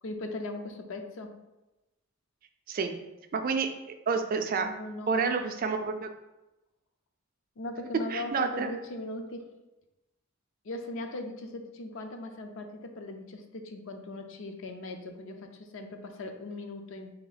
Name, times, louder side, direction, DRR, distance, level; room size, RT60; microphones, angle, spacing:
voice 1, 0.0-1.3 4.6-5.5 7.6-9.5 10.6-17.1, left 2 dB, 65° left, 5 dB, 0.5 m, -39 dB
voice 2, 3.3-3.7 4.1-4.7 5.1-6.1 8.1-8.7, right 5 dB, 45° right, 6 dB, 0.4 m, -29 dB
3.5 x 2.9 x 3.9 m, 1.0 s
head